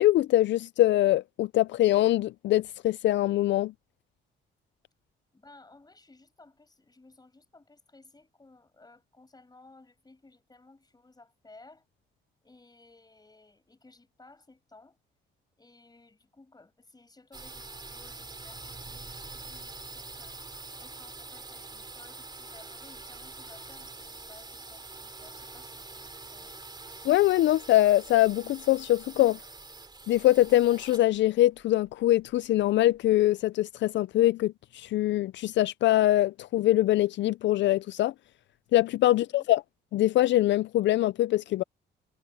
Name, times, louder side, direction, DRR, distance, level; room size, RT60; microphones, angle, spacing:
voice 1, 0.0-3.7 27.0-29.4 30.1-38.1 38.7-39.6 39.9-41.6, left 14 dB, 65° left, 0.4 m, -23 dB
voice 2, 5.3-11.9 12.4-15.0 15.6-20.4 20.8-26.7 39.1-39.5, left 3 dB, 20° left, 6.4 m, -57 dB
sound 1, 17.3-33.0, right 3 dB, 20° right, 2.7 m, -45 dB
cardioid pair, 90°, 20 cm